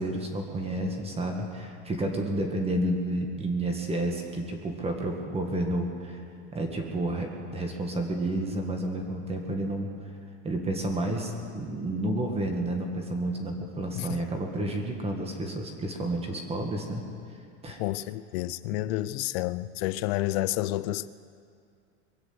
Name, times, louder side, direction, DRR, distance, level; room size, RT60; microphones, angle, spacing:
voice 1, 0.0-6.2 6.5-9.9 10.4-17.0 17.6-17.8, right 1 dB, 15° right, 1.7 m, -30 dB
voice 2, 17.8-21.1, left 16 dB, 65° left, 0.6 m, -30 dB
23.0 x 7.9 x 8.0 m
supercardioid pair, 140°, 34 cm